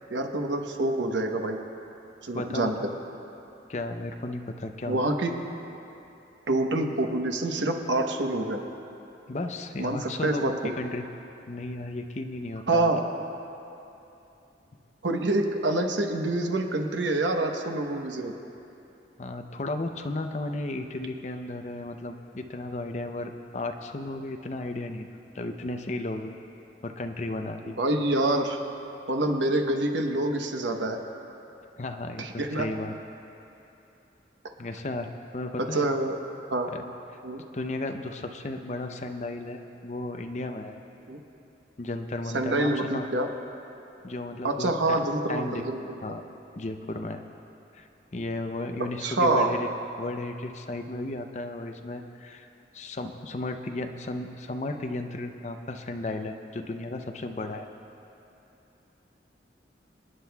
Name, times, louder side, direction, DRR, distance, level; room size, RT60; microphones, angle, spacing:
voice 1, 0.1-1.6 2.2-2.8 4.9-5.3 6.5-8.6 9.8-10.5 12.7-13.0 15.0-18.3 27.8-28.6 29.1-31.0 32.2-32.7 35.6-36.2 36.5-36.7 37.2-37.4 41.1-41.2 42.3-43.3 44.4-46.0 49.0-49.5, right 2 dB, 85° right, 3 dB, 1.0 m, -26 dB
voice 2, 2.3-2.7 3.7-5.0 9.3-11.0 11.5-12.9 19.2-25.1 25.3-26.3 26.8-27.8 31.8-32.9 34.6-35.9 36.7-36.8 37.5-40.8 41.8-43.1 44.0-45.0 45.3-45.6 46.0-46.2 46.6-47.2 47.7-49.7 50.0-52.5 52.7-57.7, left 2 dB, 40° left, 5 dB, 0.6 m, -34 dB
27.0 x 9.7 x 2.3 m, 2.8 s
head